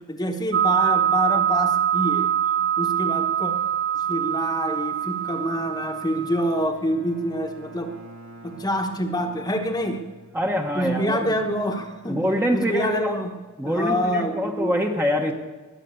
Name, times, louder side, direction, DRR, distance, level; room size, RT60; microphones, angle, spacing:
voice 1, 0.0-2.3 2.8-3.5 4.1-7.9 8.4-10.0 10.7-12.2 12.5-13.4 13.6-14.7, equal, 20° left, 4 dB, 1.2 m, -26 dB
sound 1, 0.5-6.6, right 10 dB, 45° right, 0.4 m, -24 dB
Bowed string instrument, 5.0-13.5, right 1 dB, 70° right, 2.0 m, -47 dB
voice 2, 10.3-11.4 12.1-13.2 13.6-15.3, equal, 10° right, 3 dB, 1.1 m, -25 dB
19.5 x 7.5 x 8.2 m, 1.3 s
head